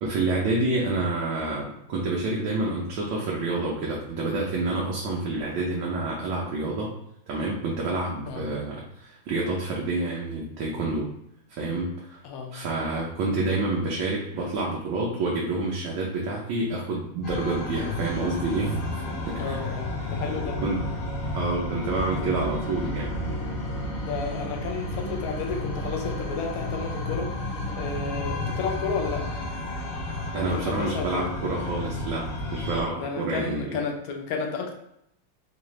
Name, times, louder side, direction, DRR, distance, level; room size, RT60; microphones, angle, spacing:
voice 1, 0.0-6.9 7.3-11.1 11.5-12.2 12.5-19.0 19.3-19.6 20.6-20.9 21.3-23.2 30.3-33.7, right 2 dB, 80° right, -3 dB, 1.5 m, -28 dB
voice 2, 12.2-12.6 19.4-20.6 22.1-22.3 24.0-27.3 27.7-29.3 30.4-31.2 32.8-34.7, left 5 dB, 80° left, 2 dB, 0.8 m, -32 dB
sound 1, 17.2-32.8, left 1 dB, 55° left, 1.2 m, -32 dB
4.5 x 2.4 x 3.1 m, 0.76 s
omnidirectional pair, 2.3 m